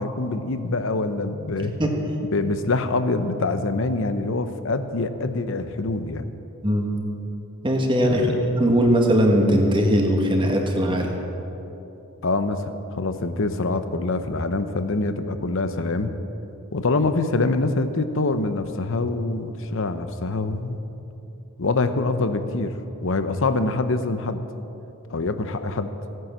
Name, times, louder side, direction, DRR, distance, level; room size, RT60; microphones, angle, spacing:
voice 1, 0.0-1.7 2.3-6.3 8.0-8.5 12.2-16.1 16.7-20.8 21.6-22.7 23.0-24.4 25.1-25.9, left 3 dB, 60° left, 10 dB, 0.8 m, -25 dB
voice 2, 7.6-11.2, equal, 20° right, 2 dB, 1.5 m, -20 dB
16.0 x 9.5 x 7.4 m, 3.0 s
head